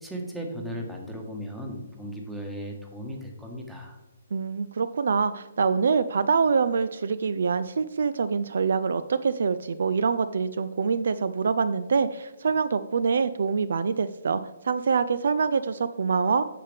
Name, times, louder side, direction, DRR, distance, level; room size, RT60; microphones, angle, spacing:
voice 1, 0.0-4.0, equal, 5° right, 0 dB, 1.3 m, -36 dB
voice 2, 4.3-16.4, right 5 dB, 60° right, 13 dB, 0.3 m, -25 dB
8.5 x 6.8 x 3.4 m, 1.0 s
figure-of-eight pair, 135°, 0 cm